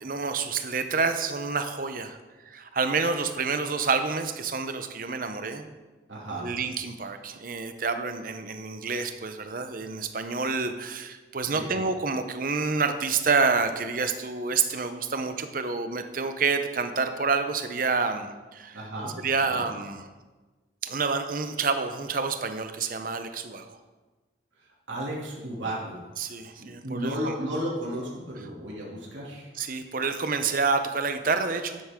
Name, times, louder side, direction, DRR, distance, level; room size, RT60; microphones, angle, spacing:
voice 1, 0.0-2.2 2.5-5.7 6.4-18.8 19.2-20.1 20.8-23.8 26.2-27.4 29.5-31.8, right 4 dB, 45° right, 8 dB, 0.8 m, -28 dB
voice 2, 6.1-6.5 11.5-11.7 18.7-19.1 19.5-19.6 24.9-26.0 26.6-29.5, right 1 dB, 80° right, -4 dB, 2.8 m, -33 dB
12.5 x 9.5 x 3.7 m, 1.3 s
head